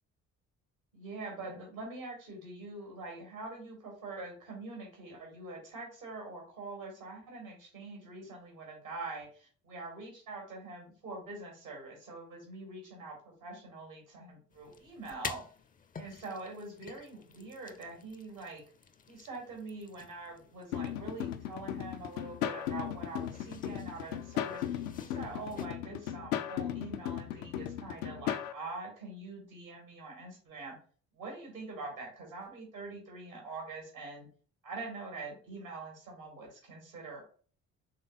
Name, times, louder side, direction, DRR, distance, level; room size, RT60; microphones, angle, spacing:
voice 1, 0.9-15.4 16.0-18.6 19.1-30.8 31.1-34.3 34.6-37.3, right 3 dB, 85° right, 0 dB, 2.1 m, -44 dB
sound 1, 14.5-25.7, left 6 dB, 20° left, 0.5 m, -50 dB
sound 2, 20.7-28.5, left 10 dB, 70° left, 0.5 m, -37 dB
5.8 x 3.4 x 2.6 m, 0.42 s
figure-of-eight pair, 45°, 41 cm